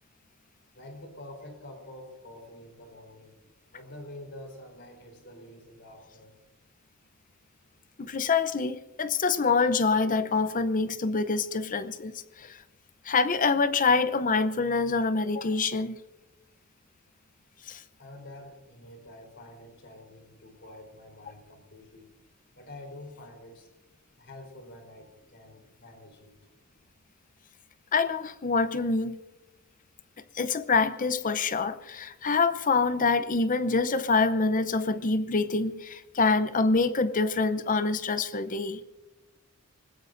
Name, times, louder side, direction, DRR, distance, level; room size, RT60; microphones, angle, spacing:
voice 1, 0.7-3.4 3.7-6.4 18.0-22.1 22.6-23.7 24.2-26.3, left 1 dB, 55° left, 4.0 m, -47 dB
voice 2, 8.0-12.6 13.0-16.0 17.7-17.8 27.9-29.2 30.3-38.8, left 4 dB, 40° left, 0.7 m, -26 dB
27.0 x 19.5 x 2.6 m
head